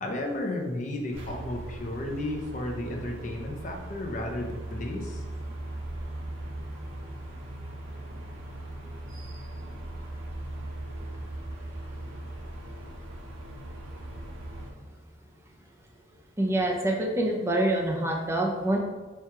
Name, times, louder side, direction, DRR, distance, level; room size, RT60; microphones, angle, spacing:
voice 1, 0.0-5.2, left 1 dB, 40° left, 1 dB, 0.6 m, -33 dB
sound 1, 1.1-14.7, right 1 dB, 85° right, 0.8 m, -39 dB
voice 2, 16.4-18.8, right 1 dB, 15° right, -1 dB, 0.5 m, -26 dB
4.5 x 2.4 x 4.5 m, 1.3 s
head